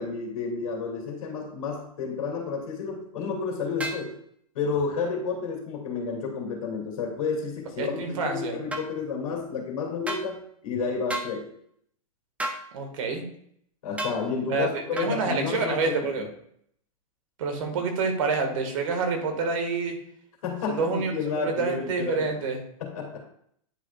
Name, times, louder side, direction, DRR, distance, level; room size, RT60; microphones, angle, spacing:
voice 1, 0.0-4.1 4.5-11.5 13.8-16.3 20.4-22.3 22.8-23.2, left 5 dB, 70° left, 1 dB, 2.6 m, -31 dB
sound 1, 3.8-4.1 8.7-8.9 10.1-10.3 11.1-11.3 12.4-12.6 14.0-14.2 15.0-15.1, right 1 dB, 5° right, 0.8 m, -31 dB
voice 2, 7.8-8.6 12.7-13.2 14.5-16.2 17.4-20.0 20.7-22.6, right 4 dB, 65° right, 4 dB, 1.8 m, -28 dB
9.9 x 5.0 x 2.4 m, 0.67 s
hypercardioid pair, 115°, 18 cm